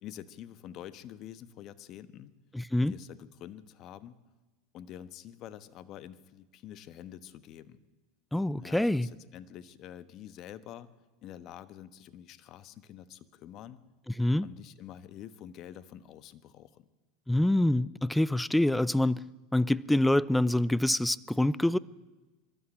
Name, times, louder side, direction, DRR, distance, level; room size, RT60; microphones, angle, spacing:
voice 1, 0.0-2.3 2.8-4.2 4.7-7.8 8.6-10.9 11.2-13.8 14.4-16.9, left 11 dB, 50° left, 14 dB, 1.2 m, -47 dB
voice 2, 2.5-2.9 8.3-9.1 14.2-14.5 17.3-19.2 19.5-21.8, left 1 dB, 5° left, 21 dB, 0.5 m, -26 dB
23.0 x 13.0 x 8.8 m, 1.2 s
hypercardioid pair, 95°, 0 cm